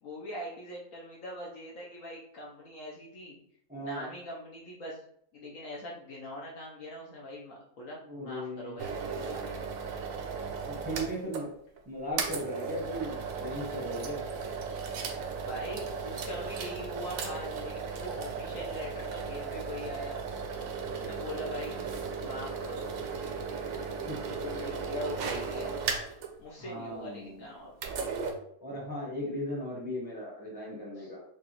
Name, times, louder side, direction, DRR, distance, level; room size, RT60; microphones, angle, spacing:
voice 1, 0.0-3.4 3.8-5.0 5.3-9.6 15.4-20.2 20.9-21.7 22.2-23.0 24.2-25.7 26.4-27.7 31.0-31.1, left 1 dB, 60° left, -3 dB, 1.0 m, -42 dB
voice 2, 3.7-4.1 8.0-8.8 10.6-11.5 11.9-14.2 21.0-21.5 24.0-24.2 26.6-27.4 28.6-31.2, equal, 5° right, -5 dB, 0.7 m, -37 dB
sound 1, 8.8-11.5 11.8-11.9 12.2-26.3 27.7-28.3, right 5 dB, 65° right, 0.9 m, -36 dB
4.8 x 2.4 x 2.9 m, 0.66 s
omnidirectional pair, 1.8 m